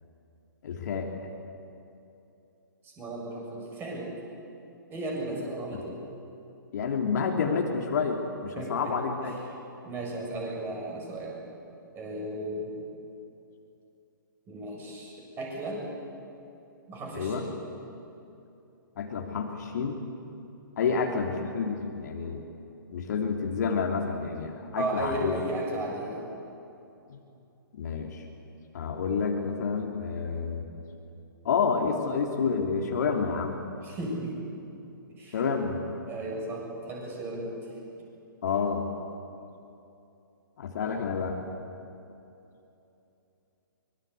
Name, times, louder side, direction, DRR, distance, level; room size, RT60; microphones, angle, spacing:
voice 1, 0.6-1.1 5.7-5.8 6.7-9.3 17.1-17.4 19.0-20.0 20.8-22.4 22.9-25.4 27.1-27.2 27.7-28.2 28.7-30.7 31.4-33.6 35.3-35.8 38.4-38.8 40.6-41.4, left 5 dB, 50° left, 2 dB, 3.1 m, -29 dB
voice 2, 2.8-4.1 4.9-6.0 8.6-8.9 9.8-11.4 11.9-12.7 14.5-15.8 16.9-17.6 20.8-21.0 24.7-26.3 33.8-34.4 35.2-35.5 36.1-37.6 40.8-41.0, right 1 dB, 20° right, -1 dB, 7.1 m, -35 dB
24.5 x 23.5 x 8.4 m, 2.8 s
figure-of-eight pair, 130°, 12 cm